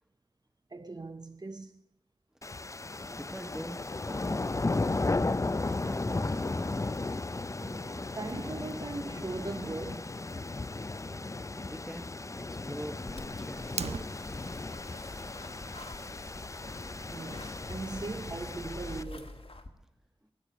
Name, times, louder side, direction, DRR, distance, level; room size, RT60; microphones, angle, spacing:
voice 1, 0.7-1.8 7.6-10.2 17.0-19.5, right 3 dB, 40° right, 0.6 m, -40 dB
sound 1, 2.4-19.0, left 3 dB, 30° left, 0.4 m, -35 dB
voice 2, 3.2-3.8 4.0-5.0 5.8-6.8 11.6-12.1 12.5-14.3, equal, 5° right, 1.3 m, -44 dB
sound 2, 13.1-19.7, left 2 dB, 65° left, 1.4 m, -46 dB
Fire, 13.6-14.6, right 5 dB, 85° right, 0.5 m, -38 dB
18.5 x 8.8 x 8.2 m
wide cardioid pair, 60°, 11 cm